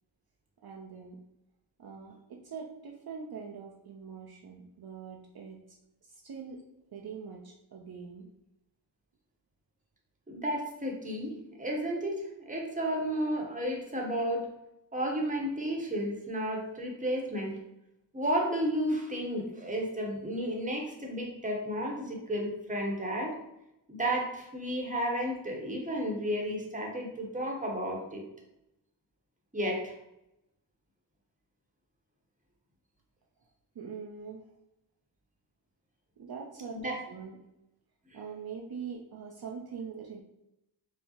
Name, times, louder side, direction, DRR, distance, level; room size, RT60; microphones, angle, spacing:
voice 1, 0.6-1.2 1.8-5.6 6.0-6.6 6.9-8.3 33.7-34.4 36.2-37.4 38.1-40.2, right 6 dB, 55° right, -1 dB, 0.5 m, -43 dB
voice 2, 10.3-14.5 14.9-17.5 18.1-23.4 23.9-28.2 29.5-29.9 36.7-37.0, equal, 15° right, 0 dB, 0.9 m, -32 dB
4.6 x 2.0 x 2.8 m, 0.86 s
wide cardioid pair, 75°, 45 cm